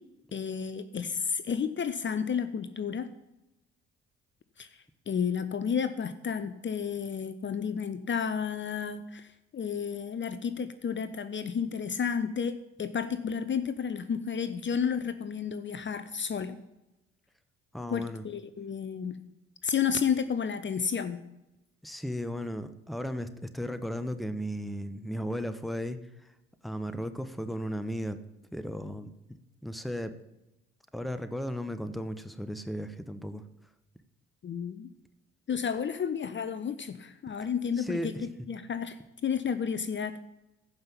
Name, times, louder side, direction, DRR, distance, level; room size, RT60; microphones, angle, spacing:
voice 1, 0.3-3.1 4.6-4.7 5.1-16.6 17.9-19.2 19.6-21.2 34.4-34.9 35.5-40.2, left 7 dB, 35° left, 12 dB, 0.9 m, -31 dB
voice 2, 17.7-18.2 21.8-26.3 26.6-28.2 28.5-29.1 29.6-30.1 30.9-33.4 37.8-38.1, equal, ahead, 11 dB, 1.1 m, -35 dB
15.0 x 5.7 x 7.2 m, 0.93 s
hypercardioid pair, 50°, 32 cm